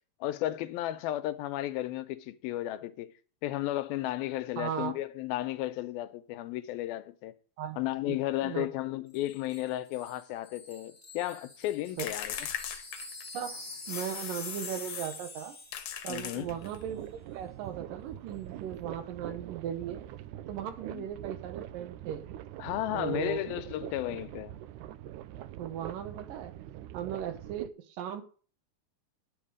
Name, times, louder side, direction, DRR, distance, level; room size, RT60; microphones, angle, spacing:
voice 1, 0.2-3.1 3.4-7.3 7.8-12.5 16.1-16.5 20.9-21.0 22.6-24.6, left 14 dB, 85° left, 2.5 m, -34 dB
voice 2, 4.6-4.9 7.6-7.8 8.1-8.2 8.4-8.7 12.0-12.1 13.3-15.6 16.0-17.1 17.3-20.0 20.5-22.3 22.9-23.5 25.6-26.5 26.9-28.2, right 9 dB, 70° right, 2.6 m, -37 dB
Wind chime, 9.1-16.4 16.6-16.8, left 2 dB, 10° left, 0.7 m, -46 dB
sound 1, 12.0-13.4 13.9-15.2 15.7-16.8, left 10 dB, 65° left, 2.0 m, -39 dB
sound 2, 16.4-27.7, right 12 dB, 85° right, 1.7 m, -44 dB
10.5 x 8.8 x 4.9 m
omnidirectional pair, 4.3 m